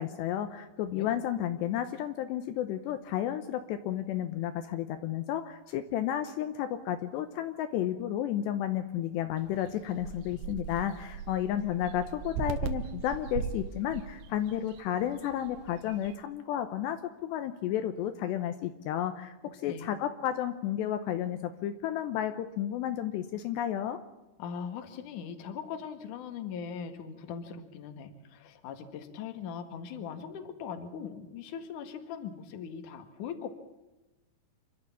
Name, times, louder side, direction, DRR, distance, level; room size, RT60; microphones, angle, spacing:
voice 1, 0.0-19.3 19.6-24.0, left 11 dB, 80° left, 9 dB, 2.9 m, -32 dB
sound 1, 9.4-16.2, right 7 dB, 70° right, 3.3 m, -39 dB
voice 2, 24.4-33.5, left 7 dB, 55° left, 7 dB, 2.7 m, -40 dB
27.5 x 12.5 x 8.6 m, 1.0 s
omnidirectional pair, 5.2 m